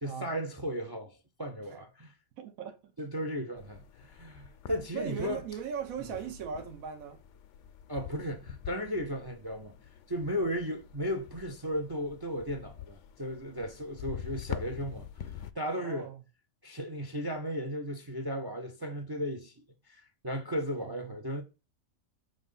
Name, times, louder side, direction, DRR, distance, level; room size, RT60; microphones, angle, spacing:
voice 1, 0.0-2.1 3.0-5.4 7.9-9.7 10.1-16.1 16.6-19.5 19.9-21.4, equal, 35° right, 0.4 m, -35 dB
voice 2, 2.4-2.9 4.9-7.2 15.7-16.2 20.8-21.2, right 7 dB, 80° right, 1.2 m, -39 dB
sound 1, 3.6-15.5, left 10 dB, 65° left, 0.8 m, -46 dB
6.2 x 2.7 x 5.5 m
omnidirectional pair, 1.4 m